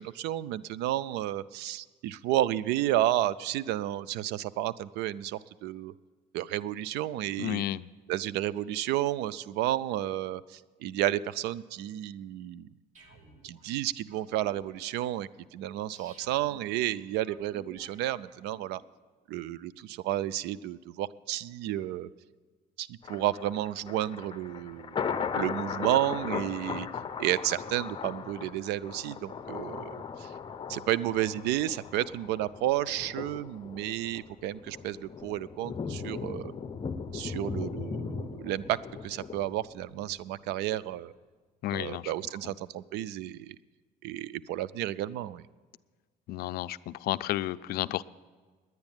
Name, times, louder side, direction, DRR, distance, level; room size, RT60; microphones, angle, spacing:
voice 1, 0.0-5.9 6.3-7.6 8.1-12.7 13.4-18.8 19.3-22.1 22.8-25.0 25.3-26.9 27.2-30.3 30.7-36.5 37.1-38.8 39.0-41.1 41.7-43.6 44.0-45.4, right 13 dB, 90° right, 19 dB, 0.4 m, -31 dB
voice 2, 7.4-7.9 41.6-42.1 46.3-48.0, left 14 dB, 65° left, 15 dB, 0.4 m, -32 dB
sound 1, 12.9-18.8, right 2 dB, 45° right, 2.5 m, -57 dB
Thunder, 23.0-40.1 40.5-40.6, left 6 dB, 30° left, 0.7 m, -38 dB
10.5 x 9.4 x 8.8 m, 1.4 s
cardioid pair, 110°, 17 cm